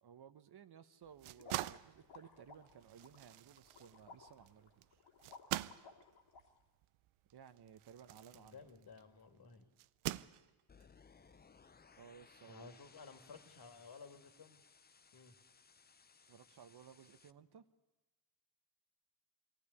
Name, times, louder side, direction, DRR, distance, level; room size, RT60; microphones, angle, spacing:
voice 1, 0.0-5.0 7.3-8.7 12.0-12.8 16.2-17.6, right 8 dB, 50° right, 11 dB, 1.1 m, -58 dB
sound 1, 1.0-9.1 9.8-10.8, right 16 dB, 80° right, 0.6 m, -45 dB
sound 2, 1.4-6.4, left 4 dB, 75° left, 2.7 m, -58 dB
voice 2, 8.3-9.6 12.4-14.6 15.1-15.3, left 4 dB, 50° left, 6 dB, 2.6 m, -55 dB
sound 3, 10.7-17.3, left 5 dB, 20° left, 0.6 m, -64 dB
20.5 x 15.5 x 9.8 m, 1.1 s
cardioid pair, 75°, 49 cm